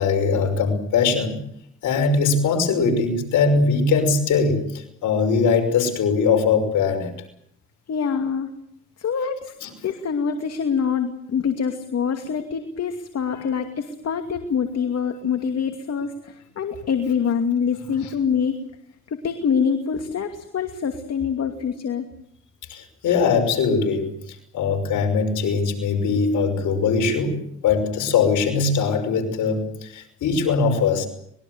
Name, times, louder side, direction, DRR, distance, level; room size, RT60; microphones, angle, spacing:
voice 1, 0.0-1.4 1.8-7.1 9.6-9.7 22.7-27.4 27.6-31.1, left 5 dB, 75° left, 4 dB, 5.9 m, -21 dB
voice 2, 7.9-8.5 9.0-9.5 9.8-18.6 19.1-22.1, left 6 dB, 55° left, 6 dB, 2.6 m, -25 dB
25.0 x 21.5 x 8.0 m, 0.71 s
cardioid pair, 90°, 30 cm